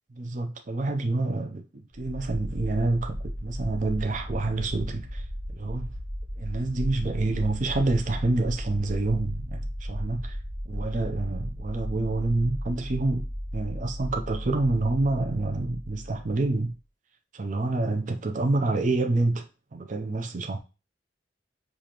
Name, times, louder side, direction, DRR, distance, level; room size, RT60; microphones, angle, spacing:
voice 1, 0.1-5.9 6.4-10.3 10.7-13.2 13.5-16.8 17.3-19.5 19.7-20.6, right 2 dB, 45° right, 0.6 m, -27 dB
sound 1, 1.9-16.7, equal, 10° right, 1.7 m, -35 dB
7.0 x 2.5 x 2.9 m
head